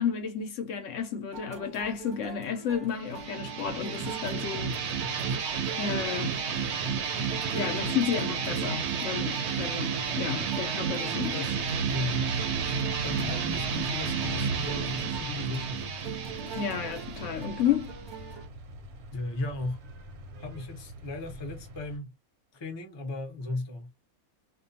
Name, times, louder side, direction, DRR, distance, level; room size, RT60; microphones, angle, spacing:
voice 1, 0.0-4.8 5.8-6.3 7.5-11.6 16.5-17.9, left 8 dB, 65° left, 0.8 m, -31 dB
sound 1, 1.3-18.5, right 7 dB, 20° right, 0.8 m, -44 dB
sound 2, 3.0-18.4, right 6 dB, 65° right, 0.7 m, -32 dB
sound 3, 11.5-22.0, right 2 dB, 90° right, 1.1 m, -40 dB
voice 2, 11.9-15.8 19.1-19.8 20.4-22.1 22.5-23.9, left 2 dB, 40° left, 0.4 m, -36 dB
2.4 x 2.2 x 2.6 m
omnidirectional pair, 1.5 m